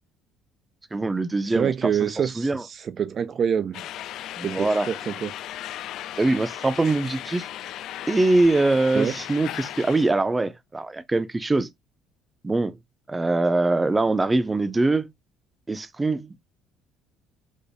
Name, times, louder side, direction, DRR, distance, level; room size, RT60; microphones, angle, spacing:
voice 1, 0.9-2.6 4.4-4.9 6.2-7.5 8.1-11.7 12.4-12.8 13.1-15.1 15.7-16.4, right 2 dB, 15° right, 0.7 m, -23 dB
voice 2, 1.5-3.8 4.4-5.3 8.9-9.1, right 8 dB, 45° right, 0.4 m, -26 dB
sound 1, 3.7-10.1, left 12 dB, 65° left, 0.4 m, -36 dB
5.2 x 3.9 x 2.2 m
cardioid pair, 100°, 0 cm